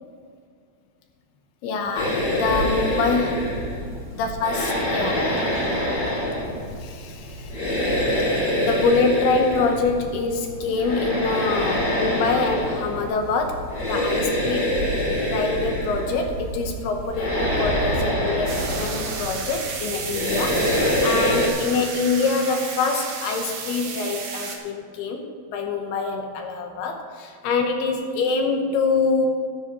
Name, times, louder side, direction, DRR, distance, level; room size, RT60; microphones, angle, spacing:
voice 1, 1.6-2.1 2.4-3.5 4.1-5.3 6.8-7.5 8.6-14.7 15.2-29.3, left 4 dB, 75° left, 3 dB, 2.8 m, -25 dB
sound 1, 1.9-21.5, equal, 30° left, 2.7 m, -25 dB
sound 2, 18.5-24.6, right 5 dB, 65° right, 2.1 m, -33 dB
13.5 x 13.0 x 3.0 m, 2.1 s
omnidirectional pair, 4.8 m